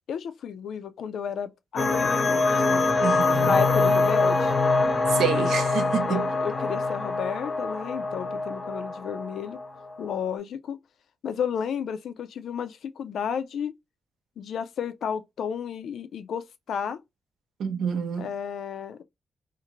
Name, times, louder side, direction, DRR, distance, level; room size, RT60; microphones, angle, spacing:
voice 1, 0.1-2.9 3.4-4.5 6.1-9.6 10.0-10.8 11.2-13.7 14.4-17.0 18.2-19.0, left 7 dB, 75° left, 0.3 m, -32 dB
sound 1, 1.8-10.0, left 3 dB, 25° left, 0.6 m, -24 dB
voice 2, 3.0-3.6 5.1-6.3 17.6-18.3, right 7 dB, 85° right, 0.6 m, -27 dB
2.5 x 2.5 x 2.9 m
cardioid pair, 125°, 0 cm